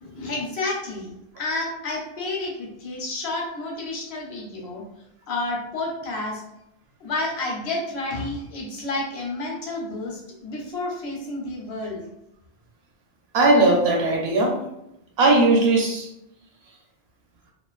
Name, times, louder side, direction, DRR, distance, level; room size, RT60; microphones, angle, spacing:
voice 1, 0.0-4.8 5.3-6.4 7.0-12.1, left 2 dB, 80° left, 0 dB, 0.9 m, -30 dB
voice 2, 13.3-14.6 15.2-16.1, right 2 dB, 75° right, 0 dB, 0.8 m, -18 dB
2.4 x 2.1 x 2.3 m, 0.84 s
omnidirectional pair, 1.1 m